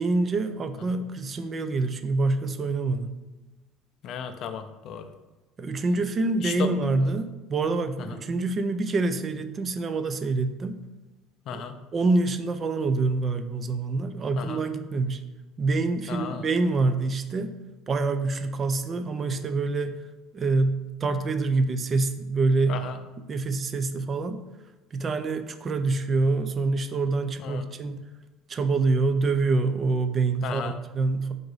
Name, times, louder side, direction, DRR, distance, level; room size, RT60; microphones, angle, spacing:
voice 1, 0.0-3.1 5.6-10.8 11.5-11.6 11.9-15.2 15.6-17.5 17.9-20.0 20.3-22.8 23.3-24.4 24.9-28.0 28.5-31.3, right 3 dB, 25° right, 9 dB, 0.3 m, -26 dB
voice 2, 4.0-5.1 6.4-6.7 7.0-7.1 8.1-8.2 11.5-11.8 14.4-14.6 16.1-16.5 22.7-23.0 27.4-27.6 30.4-30.8, left 7 dB, 50° left, 8 dB, 0.4 m, -34 dB
3.8 x 2.6 x 4.7 m, 1.1 s
cardioid pair, 140°, 0 cm